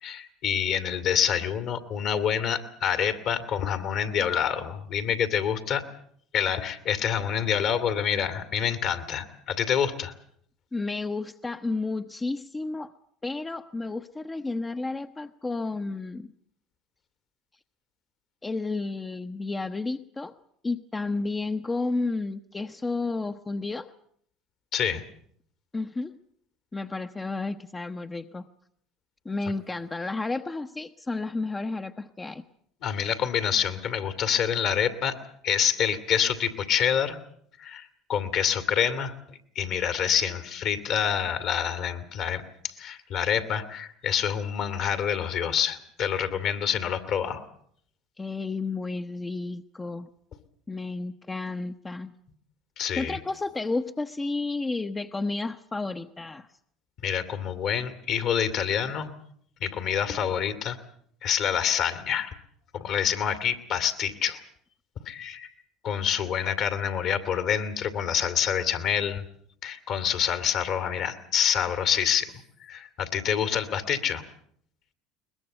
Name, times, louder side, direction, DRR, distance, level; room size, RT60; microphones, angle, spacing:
voice 1, 0.0-5.8 6.3-10.1 24.7-25.0 32.8-35.2 35.4-37.2 37.6-39.1 39.5-47.4 52.8-53.2 57.0-59.1 59.6-60.8 61.2-62.3 62.7-64.4 65.0-65.5 65.8-69.2 69.6-74.2, left 8 dB, 55° left, 10 dB, 2.5 m, -27 dB
voice 2, 10.7-12.9 13.2-16.3 18.4-20.3 20.6-23.9 25.7-26.2 26.7-28.5 29.2-32.4 48.2-50.1 50.7-52.1 52.9-56.5, left 3 dB, 20° left, 7 dB, 0.9 m, -31 dB
22.0 x 21.0 x 8.0 m, 0.65 s
hypercardioid pair, 70°, 0 cm